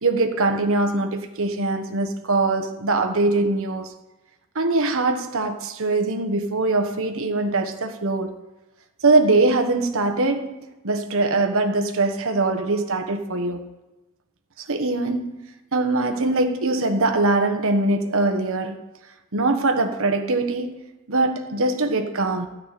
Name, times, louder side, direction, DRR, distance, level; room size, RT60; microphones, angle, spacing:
voice 1, 0.0-3.9 4.5-8.4 9.0-10.5 10.8-13.6 14.6-18.8 19.3-20.8 21.1-22.5, right 2 dB, 65° right, 1.3 m, -22 dB
13.5 x 6.0 x 9.1 m
head